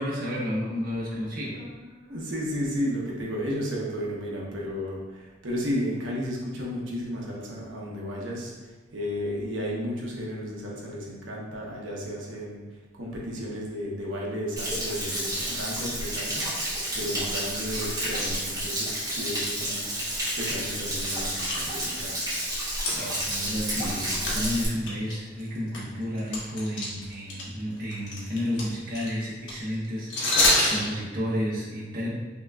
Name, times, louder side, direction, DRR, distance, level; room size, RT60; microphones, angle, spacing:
voice 1, 0.0-1.6 22.9-32.1, equal, 50° right, -6 dB, 1.2 m, -31 dB
voice 2, 1.5-8.5 8.9-12.6 12.9-19.9 20.4-22.3, equal, 85° right, -3 dB, 1.0 m, -33 dB
Stream / Splash splatter / Trickle dribble, 14.6-24.6, right 1 dB, 20° right, 1.4 m, -30 dB
sound 1, 15.1-15.2 15.5-15.8 16.3-16.4 16.8-17.0 17.7-19.1 19.4-19.5 20.1-20.2 20.6-22.2 22.7-24.0 24.2-24.4 24.8-27.4 27.7-30.9, left 2 dB, 70° left, 1.1 m, -28 dB
5.9 x 2.9 x 2.4 m, 1.3 s
head